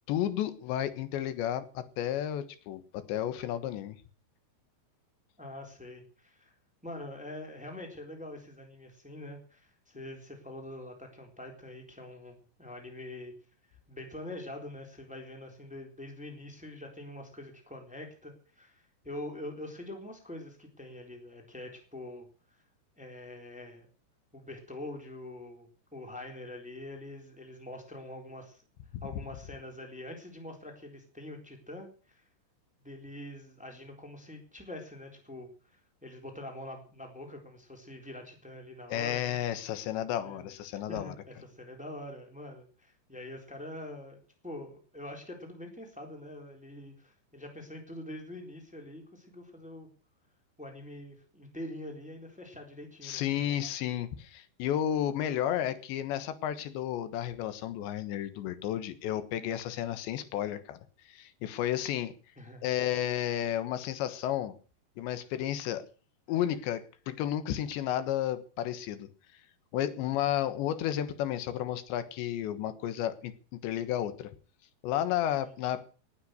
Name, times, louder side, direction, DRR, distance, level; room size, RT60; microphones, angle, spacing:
voice 1, 0.1-4.0 28.9-29.0 38.9-41.2 53.0-60.8 61.1-62.1 62.6-64.6 65.0-65.9 66.3-69.1 69.7-74.3 74.8-75.8, left 11 dB, 85° left, 12 dB, 3.6 m, -32 dB
voice 2, 5.4-6.5 6.8-13.3 13.9-22.6 23.0-23.9 24.3-28.6 29.0-32.2 32.8-39.4 40.2-40.4 40.9-49.9 50.6-53.6 62.4-62.7 75.4-75.5, left 1 dB, ahead, 3 dB, 3.1 m, -44 dB
19.0 x 9.3 x 6.5 m, 0.39 s
omnidirectional pair, 5.0 m